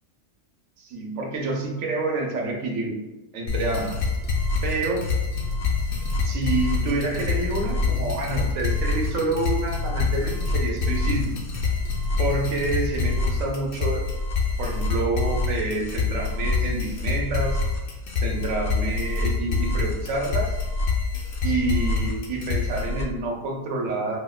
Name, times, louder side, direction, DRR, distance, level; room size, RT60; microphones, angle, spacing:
voice 1, 0.8-3.0 3.3-4.0 4.6-5.1 6.2-11.4 12.2-14.0 14.6-17.6 18.2-20.6 21.4-24.2, right 2 dB, 80° right, 1 dB, 1.0 m, -28 dB
sound 1, 3.5-23.0, left 4 dB, 60° left, 0.6 m, -26 dB
4.9 x 2.0 x 2.3 m, 1.0 s
omnidirectional pair, 1.4 m